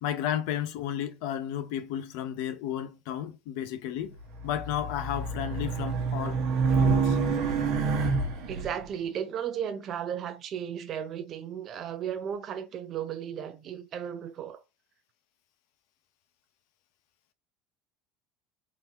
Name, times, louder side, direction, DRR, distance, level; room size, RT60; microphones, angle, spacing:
voice 1, 0.0-4.2 4.4-6.4 6.8-7.2, left 10 dB, 70° left, 0.5 m, -33 dB
Race car auto racing, 4.3-8.7, right 4 dB, 55° right, 0.9 m, -27 dB
voice 2, 8.5-14.6, right 9 dB, 35° right, 0.4 m, -35 dB
3.7 x 2.7 x 2.8 m
cardioid pair, 170°, 0 cm